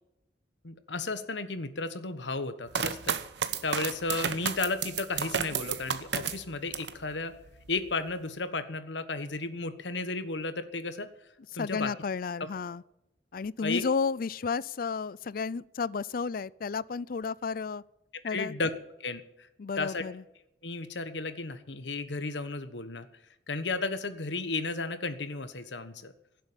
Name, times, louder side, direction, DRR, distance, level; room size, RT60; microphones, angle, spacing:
voice 1, 0.6-3.2 3.6-7.3 7.7-11.1 11.5-11.9 13.6-13.8 18.2-18.7 19.0-19.5 19.8-20.0 20.6-23.1 23.5-26.1, left 3 dB, 90° left, 1.3 m, -33 dB
sound 1, 2.7-7.0 7.5-8.1, right 7 dB, 75° right, 1.0 m, -32 dB
voice 2, 11.6-12.8 13.3-17.8 18.2-18.5 19.6-20.2, left 5 dB, 55° left, 0.4 m, -32 dB
16.5 x 7.7 x 9.0 m
head